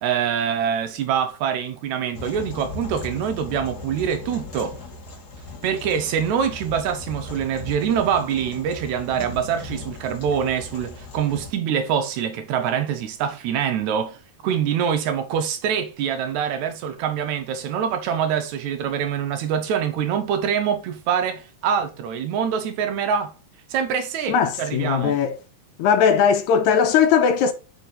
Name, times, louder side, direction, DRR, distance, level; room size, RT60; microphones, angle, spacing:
voice 1, 0.0-4.8 5.6-23.3 23.7-25.2, right 8 dB, 80° right, 1.8 m, -25 dB
sound 1, 2.1-11.5, left 3 dB, 50° left, 1.2 m, -38 dB
voice 2, 24.3-25.4 25.8-27.5, left 7 dB, 80° left, 1.9 m, -19 dB
5.8 x 5.0 x 3.9 m
omnidirectional pair, 3.7 m